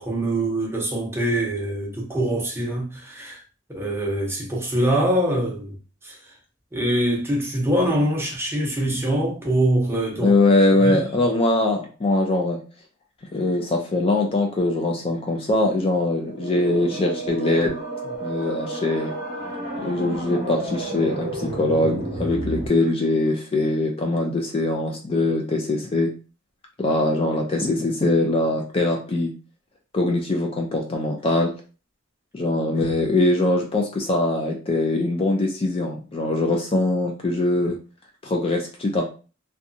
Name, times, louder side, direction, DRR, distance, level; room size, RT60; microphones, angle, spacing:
voice 1, 0.0-3.4 3.7-5.7 6.0-6.2 6.7-10.3 10.8-11.0, right 1 dB, 10° right, 0.7 m, -24 dB
voice 2, 10.2-12.6 13.3-17.7 18.2-19.1 19.8-26.1 26.8-29.3 29.9-31.5 32.3-37.8 38.2-39.1, left 2 dB, 30° left, 0.4 m, -22 dB
sound 1, 16.2-22.7, right 2 dB, 50° right, 0.8 m, -31 dB
2.7 x 2.2 x 2.5 m
head